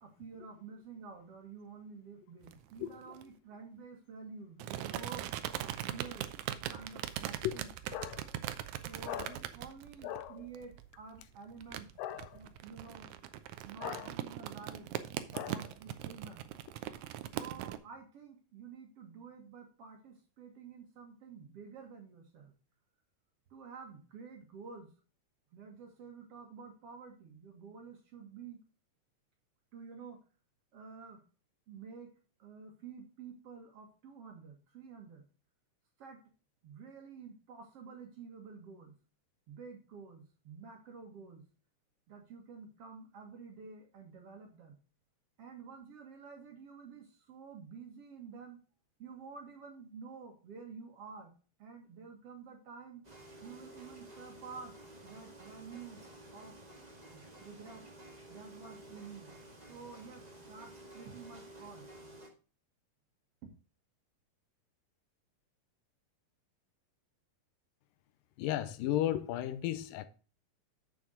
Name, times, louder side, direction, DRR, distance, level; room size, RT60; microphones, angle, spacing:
voice 1, 0.0-5.3 5.8-6.3 6.7-7.7 8.9-11.9 12.3-13.1 13.7-14.9 15.5-16.5 17.3-22.5 23.5-24.9 25.5-28.6 29.7-30.2 30.7-31.2 31.7-32.1 32.4-35.2 36.0-36.2 36.6-39.0 39.5-41.5 42.1-44.8 45.4-48.6 49.0-51.3 51.6-53.0 53.4-54.8 55.0-56.1 56.3-56.6 57.1-57.9 58.3-59.4 59.7-61.9 63.4-63.5, right 5 dB, 50° right, 2.2 m, -50 dB
sound 1, 2.4-3.2 4.6-17.8, right 12 dB, 75° right, 1.8 m, -41 dB
voice 2, 7.9-8.3 9.0-9.4 10.0-10.5 12.0-12.4 13.8-14.1 15.3-15.7 68.4-70.1, left 12 dB, 80° left, 2.3 m, -36 dB
sound 2, 53.0-62.3, right 1 dB, 30° right, 0.7 m, -53 dB
7.6 x 7.0 x 3.8 m
omnidirectional pair, 4.0 m